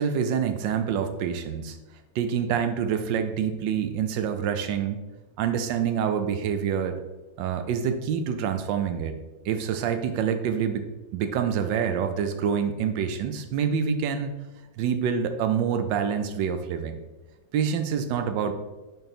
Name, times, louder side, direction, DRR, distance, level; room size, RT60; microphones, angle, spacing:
voice 1, 0.0-1.8 2.1-5.0 5.4-7.0 7.4-9.2 9.4-10.9 11.1-14.3 14.8-17.0 17.5-18.5, right 7 dB, 75° right, 7 dB, 1.3 m, -26 dB
6.6 x 4.2 x 4.2 m, 1.1 s
omnidirectional pair, 2.1 m